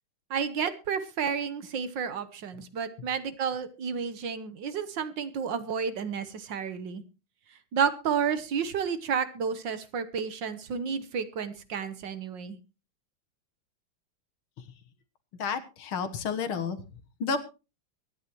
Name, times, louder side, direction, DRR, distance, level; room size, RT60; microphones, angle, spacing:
voice 1, 0.3-7.0 7.7-12.6, right 6 dB, 60° right, 13 dB, 1.6 m, -31 dB
voice 2, 15.4-16.8 17.2-17.4, left 5 dB, 75° left, 10 dB, 2.1 m, -30 dB
23.0 x 10.5 x 3.0 m, 0.30 s
omnidirectional pair, 2.4 m